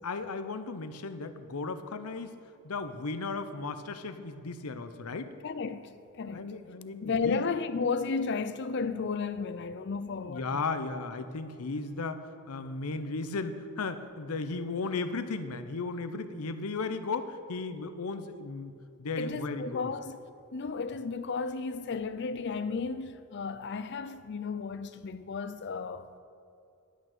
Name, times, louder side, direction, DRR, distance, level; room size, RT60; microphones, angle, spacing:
voice 1, 0.0-2.4 2.6-5.3 6.3-7.4 10.3-18.7 19.0-19.9, left 3 dB, 85° left, 0.7 m, -35 dB
voice 2, 5.4-5.9 6.2-6.5 7.0-10.6 19.2-20.2 20.5-26.2, left 4 dB, 55° left, 0.5 m, -33 dB
11.0 x 6.1 x 6.7 m
head